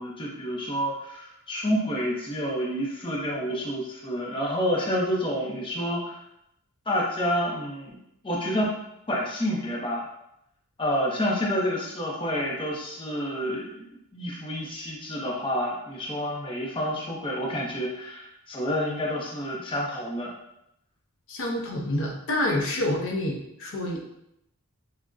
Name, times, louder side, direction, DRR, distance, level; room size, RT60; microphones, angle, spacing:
voice 1, 0.0-6.2 6.9-8.0 8.2-8.7 9.1-10.0 10.8-13.8 14.1-20.3, equal, 25° left, -3 dB, 0.6 m, -29 dB
voice 2, 21.3-24.1, left 1 dB, 60° left, 0 dB, 0.6 m, -28 dB
5.8 x 2.1 x 2.5 m, 0.80 s
head